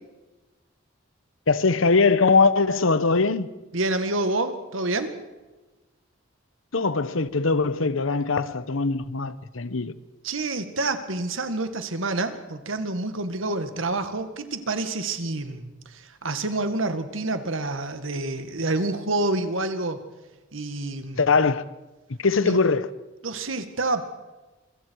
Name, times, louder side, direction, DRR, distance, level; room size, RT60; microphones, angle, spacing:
voice 1, 1.5-3.5 6.7-9.9 21.1-21.6 22.2-22.9, left 4 dB, 90° left, 1.0 m, -21 dB
voice 2, 3.7-5.2 10.2-20.0 20.5-21.2 22.4-22.6 23.2-24.0, right 2 dB, 85° right, 2.0 m, -28 dB
27.0 x 23.5 x 4.8 m
head